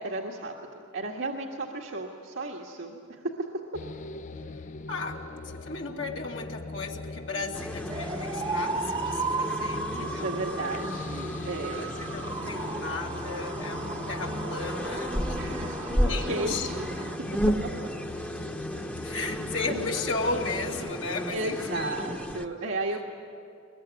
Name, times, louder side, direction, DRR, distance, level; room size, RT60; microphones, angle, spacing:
voice 1, 0.0-3.0 3.2-3.5 9.9-11.9 15.3-17.1 17.8-17.9 19.0-19.2 19.7-19.9 21.3-23.0, right 2 dB, 85° right, -1 dB, 1.8 m, -34 dB
sound 1, 3.7-20.9, left 2 dB, 40° left, 0.5 m, -41 dB
voice 2, 4.9-10.3 11.7-15.7 16.0-16.7 17.0-17.1 19.0-22.1, left 3 dB, 70° left, -1 dB, 2.4 m, -35 dB
sound 2, 7.5-22.5, equal, 5° left, 1.0 m, -33 dB
sound 3, 7.9-17.2, right 3 dB, 25° right, 1.1 m, -36 dB
23.0 x 22.0 x 9.6 m, 2.6 s
head